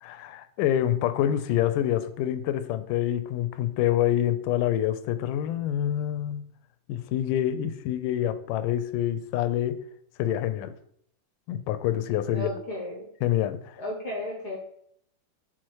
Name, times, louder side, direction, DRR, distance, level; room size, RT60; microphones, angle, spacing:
voice 1, 0.0-6.4 6.9-9.8 10.2-10.8 11.5-12.5 13.2-13.8, left 11 dB, 80° left, 11 dB, 2.1 m, -26 dB
voice 2, 12.3-13.1 13.8-14.6, equal, 60° left, -1 dB, 1.0 m, -34 dB
5.9 x 4.7 x 4.6 m, 0.69 s
omnidirectional pair, 3.8 m